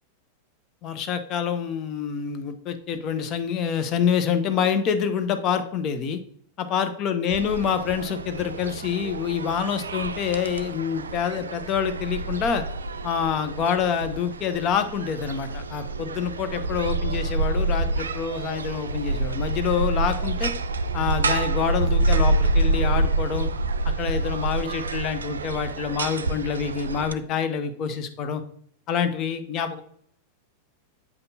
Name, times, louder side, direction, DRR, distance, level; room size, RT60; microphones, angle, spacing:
voice 1, 0.8-6.2 6.6-12.6 13.0-20.5 20.9-23.5 23.8-28.4 28.9-29.8, left 7 dB, 35° left, 8 dB, 0.8 m, -26 dB
sound 1, 7.3-27.1, right 2 dB, 70° right, 0.4 m, -27 dB
8.3 x 5.2 x 2.8 m, 0.62 s
figure-of-eight pair, 90°, 0 cm